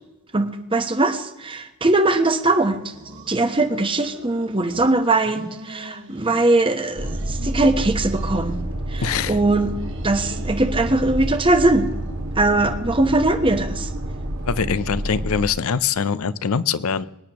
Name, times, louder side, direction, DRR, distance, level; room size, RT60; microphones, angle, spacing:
voice 1, 0.3-2.8 3.3-8.6 8.9-9.8 10.0-11.9 12.4-13.9, right 2 dB, 25° right, 8 dB, 1.0 m, -20 dB
sound 1, 2.8-4.9 5.2-6.6 6.9-8.6 8.9-12.1, right 1 dB, 55° right, 1.9 m, -42 dB
sound 2, 7.0-15.5, right 1 dB, 75° right, 1.7 m, -29 dB
voice 2, 9.0-9.4 14.5-17.1, left 6 dB, 70° left, 17 dB, 0.5 m, -23 dB
23.5 x 10.0 x 3.0 m, 0.95 s
head